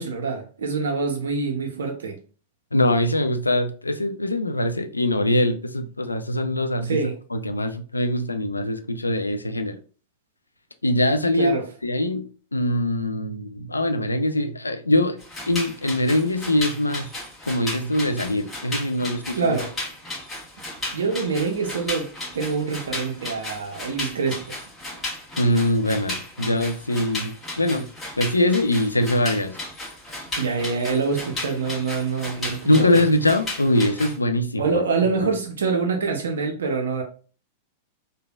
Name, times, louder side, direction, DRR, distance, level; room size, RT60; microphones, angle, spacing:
voice 1, 0.0-2.2 6.8-7.2 11.3-11.7 19.4-19.7 20.9-24.4 30.4-33.0 34.6-37.0, right 4 dB, 70° right, 0.5 m, -25 dB
voice 2, 2.7-7.0 7.3-9.8 10.8-11.6 11.8-15.2 15.5-17.1 17.5-19.6 25.4-27.9 28.2-29.6 32.6-34.8 35.2-35.3, left 1 dB, 90° left, 0.3 m, -22 dB
sound 1, 15.2-34.2, left 2 dB, 15° left, 1.2 m, -35 dB
3.2 x 2.3 x 2.2 m
figure-of-eight pair, 95°, 0 cm